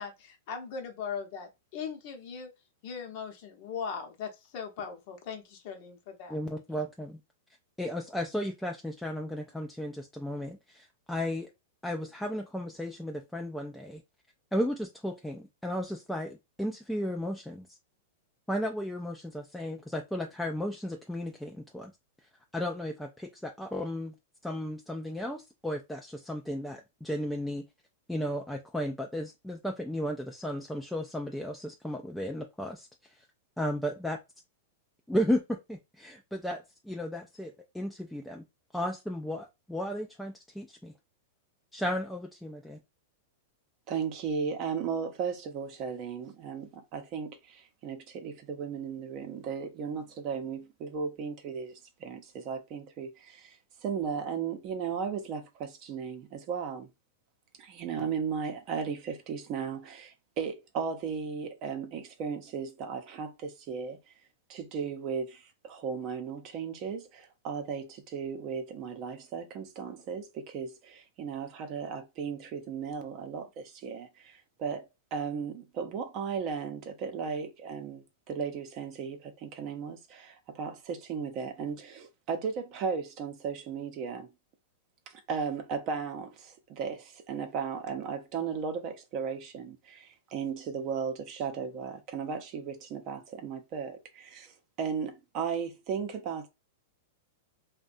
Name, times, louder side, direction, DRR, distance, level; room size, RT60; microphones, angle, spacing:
voice 1, 0.0-2.5 2.8-6.4, left 6 dB, 55° left, 0.7 m, -39 dB
voice 2, 6.3-7.2 7.8-11.5 11.8-14.0 14.5-17.7 18.5-21.9 22.5-24.1 24.4-27.7 28.1-33.3 33.6-34.2 35.1-38.4 38.7-40.9 41.7-42.8, equal, 5° left, 0.3 m, -34 dB
voice 3, 43.9-53.6 53.8-56.9 57.6-64.0 64.5-84.3 85.1-96.5, right 6 dB, 45° right, 0.6 m, -36 dB
2.6 x 2.2 x 2.5 m
hypercardioid pair, 125°, 0 cm